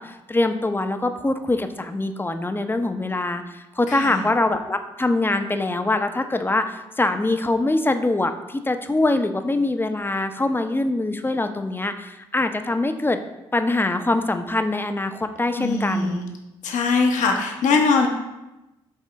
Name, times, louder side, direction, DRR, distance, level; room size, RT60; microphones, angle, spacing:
voice 1, 0.0-13.2 13.5-16.2, left 2 dB, 15° left, 8 dB, 0.7 m, -23 dB
voice 2, 3.9-4.3 15.6-16.3 16.6-18.1, left 4 dB, 70° left, 2 dB, 1.0 m, -21 dB
8.3 x 3.7 x 3.2 m, 0.98 s
hypercardioid pair, 45°, 13 cm